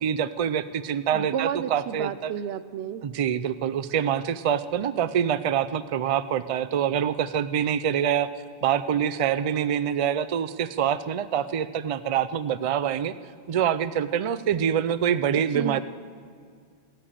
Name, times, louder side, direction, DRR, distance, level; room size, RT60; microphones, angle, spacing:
voice 1, 0.0-2.3 3.0-8.3 8.6-13.1 13.5-15.8, right 9 dB, 50° right, 13 dB, 0.4 m, -25 dB
voice 2, 1.1-3.0 15.5-15.8, right 9 dB, 80° right, 14 dB, 0.9 m, -31 dB
15.0 x 8.6 x 9.0 m, 2.1 s
omnidirectional pair, 1.1 m